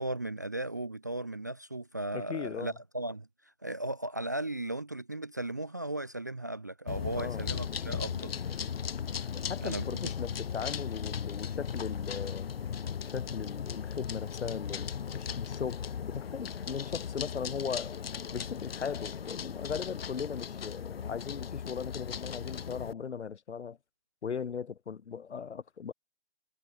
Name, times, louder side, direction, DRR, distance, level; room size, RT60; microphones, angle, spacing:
voice 1, 0.0-8.3 9.6-10.1, right 1 dB, 15° right, 0.5 m, -36 dB
voice 2, 2.1-2.7 7.1-7.4 9.3-12.5 13.1-18.0 18.3-23.8 24.2-25.9, left 6 dB, 70° left, 3.7 m, -38 dB
sound 1, 6.9-22.9, left 7 dB, 55° left, 2.9 m, -37 dB
hypercardioid pair, 175°, 35 cm